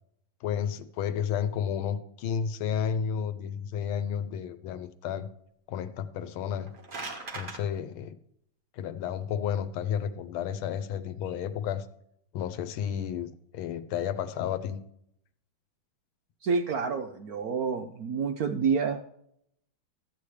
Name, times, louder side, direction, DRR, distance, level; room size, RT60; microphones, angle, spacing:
voice 1, 0.4-5.3 5.7-6.7 7.3-8.2 8.7-11.9 12.3-14.8, left 8 dB, 90° left, 13 dB, 1.5 m, -32 dB
sound 1, 6.5-7.6, right 3 dB, 35° right, 1.0 m, -39 dB
voice 2, 16.4-19.0, right 5 dB, 80° right, 5 dB, 0.8 m, -28 dB
13.0 x 8.5 x 3.2 m, 0.74 s
omnidirectional pair, 2.2 m